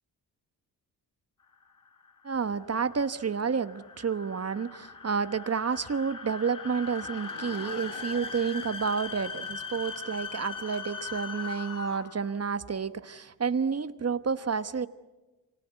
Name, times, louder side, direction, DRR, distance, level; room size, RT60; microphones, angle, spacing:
sound 1, 1.6-12.3, left 5 dB, 50° left, 2.1 m, -40 dB
voice 1, 2.2-14.9, right 6 dB, 35° right, 13 dB, 1.2 m, -30 dB
Laughter / Crowd, 6.9-11.1, left 4 dB, 65° left, 4.0 m, -51 dB
28.0 x 24.5 x 8.2 m, 1.2 s
supercardioid pair, 55°, 41 cm